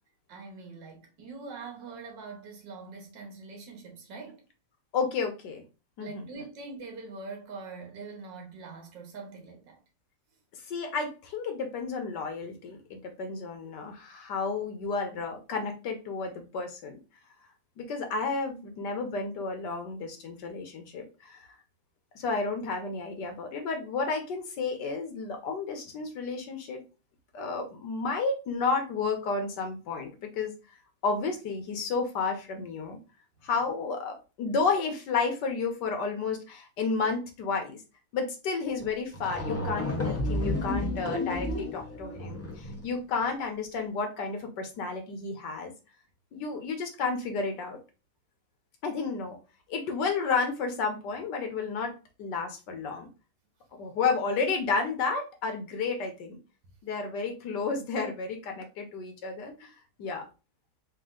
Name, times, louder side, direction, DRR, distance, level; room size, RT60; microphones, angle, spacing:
voice 1, 0.3-4.4 6.0-9.8, right 4 dB, 75° right, 1.8 m, -43 dB
voice 2, 4.9-5.6 6.0-6.3 10.7-17.0 17.8-21.4 22.1-26.8 27.3-30.5 31.0-33.0 33.4-37.8 38.1-45.7 46.3-47.8 48.8-49.4 49.7-51.9 52.2-53.1 53.8-56.4 56.8-59.7 60.0-60.3, left 4 dB, 70° left, 1.5 m, -31 dB
sound 1, 38.8-38.9 39.1-42.9, left 1 dB, 20° left, 0.4 m, -32 dB
4.4 x 2.7 x 3.7 m
omnidirectional pair, 2.0 m